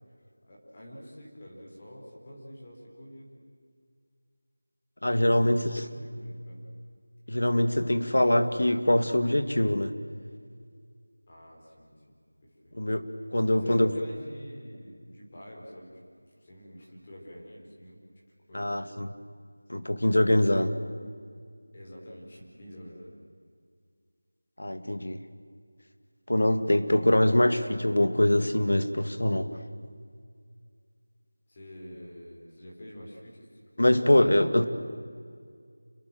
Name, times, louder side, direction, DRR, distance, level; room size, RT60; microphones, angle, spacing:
voice 1, 0.5-3.4 5.3-6.7 11.3-12.8 13.4-16.0 16.4-18.0 18.5-18.9 21.7-23.1 31.5-34.1, equal, 20° left, -3 dB, 4.3 m, -47 dB
voice 2, 5.0-5.9 7.3-9.9 12.7-13.9 18.5-19.1 19.7-20.8 24.6-25.2 26.3-29.5 33.8-34.7, left 1 dB, 80° left, 9 dB, 2.2 m, -24 dB
28.0 x 23.5 x 7.7 m, 2.1 s
figure-of-eight pair, 180°, 0 cm